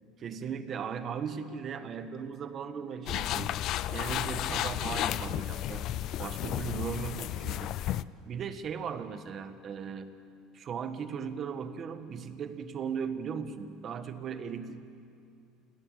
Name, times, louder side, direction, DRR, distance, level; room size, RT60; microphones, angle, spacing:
voice 1, 0.2-7.8 8.2-10.2 10.5-14.8, right 6 dB, 35° right, 10 dB, 1.3 m, -38 dB
sound 1, 3.1-8.0, left 13 dB, 50° left, 0.5 m, -33 dB
28.5 x 18.5 x 7.6 m, 2.4 s
cardioid pair, 135°, 0 cm